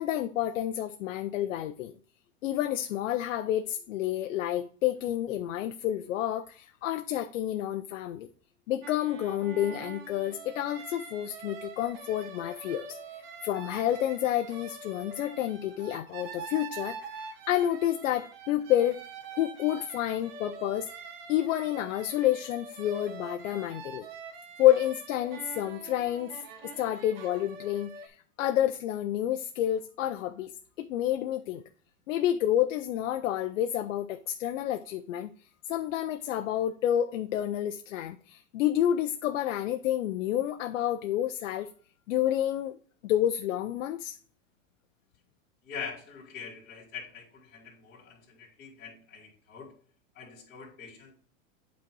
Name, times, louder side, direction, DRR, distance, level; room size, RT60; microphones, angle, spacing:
voice 1, 0.0-1.9 2.4-8.3 8.7-13.0 13.4-19.0 19.4-20.9 21.3-24.1 24.6-26.4 26.8-30.5 30.8-31.6 32.1-35.3 35.7-41.7 42.1-42.8 43.0-44.2, left 12 dB, 75° left, 7 dB, 0.7 m, -29 dB
sound 1, 8.8-28.1, right 4 dB, 45° right, 1.3 m, -44 dB
voice 2, 45.6-49.7 50.1-51.1, left 6 dB, 25° left, -7 dB, 2.5 m, -43 dB
8.7 x 4.2 x 4.7 m, 0.43 s
supercardioid pair, 160°, 39 cm